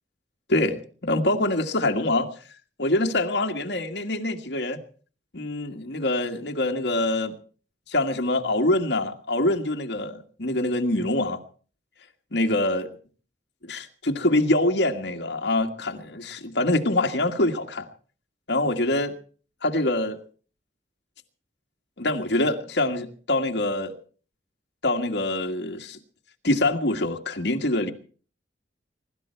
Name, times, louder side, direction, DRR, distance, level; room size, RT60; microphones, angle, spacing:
voice 1, 0.5-2.3 2.8-4.8 5.3-7.3 7.9-11.4 12.3-12.9 13.6-17.9 18.5-19.1 19.6-20.2 22.0-23.9 24.8-26.0 26.4-27.9, left 1 dB, 75° left, 1.7 m, -25 dB
23.5 x 12.5 x 4.5 m
head